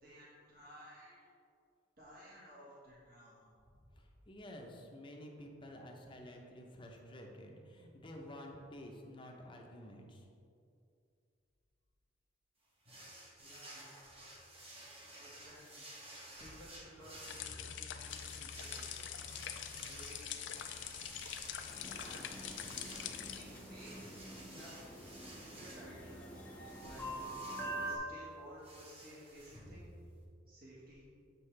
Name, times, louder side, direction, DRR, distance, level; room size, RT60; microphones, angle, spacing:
voice 1, 0.0-1.2 2.0-3.8 13.4-14.0 15.2-15.9 16.4-18.9 19.7-20.9 21.6-22.3 23.3-24.1 24.4-25.0 25.3-27.4 27.7-29.9 30.5-31.1, equal, 55° right, -7 dB, 1.6 m, -56 dB
voice 2, 3.9-10.3, left 1 dB, 25° left, 1 dB, 0.7 m, -51 dB
sound 1, 12.9-30.2, right 1 dB, 30° right, 1.2 m, -54 dB
sound 2, 17.2-23.4, left 9 dB, 70° left, 0.5 m, -44 dB
sound 3, 21.7-28.0, right 1 dB, 5° left, 1.1 m, -46 dB
7.2 x 5.6 x 3.3 m, 2.5 s
head